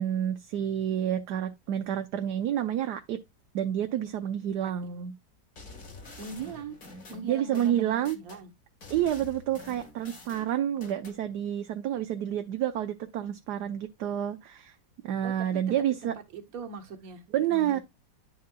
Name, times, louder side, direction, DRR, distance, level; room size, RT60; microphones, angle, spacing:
voice 1, 0.0-3.2 3.5-5.1 7.2-8.2 8.9-14.7 15.0-16.1 17.3-17.8, right 10 dB, 70° right, 1.3 m, -29 dB
sound 1, 5.6-8.4 8.8-11.2, left 3 dB, 55° left, 2.2 m, -47 dB
voice 2, 6.2-6.8 7.1-8.5 15.2-15.6 16.0-17.2 17.5-17.8, right 5 dB, 55° right, 1.6 m, -41 dB
11.0 x 5.6 x 2.3 m
omnidirectional pair, 2.0 m